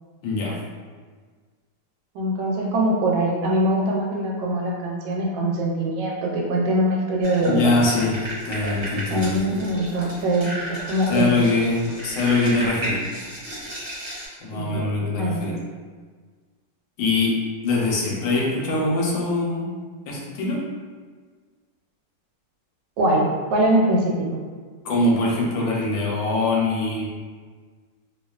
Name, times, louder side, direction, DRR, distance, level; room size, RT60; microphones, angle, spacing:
voice 1, 0.2-0.5 7.4-9.6 11.1-13.0 14.4-15.5 17.0-17.3 17.6-19.8 20.1-20.6 24.8-27.1, left 2 dB, 85° left, -3 dB, 1.3 m, -23 dB
voice 2, 2.1-7.6 9.1-11.3 14.5-14.9 15.2-15.4 23.0-24.1, right 1 dB, 85° right, -1 dB, 1.2 m, -22 dB
sound 1, 7.2-14.3, right 1 dB, 55° right, 1.1 m, -33 dB
2.9 x 2.3 x 2.3 m, 1.5 s
omnidirectional pair, 1.9 m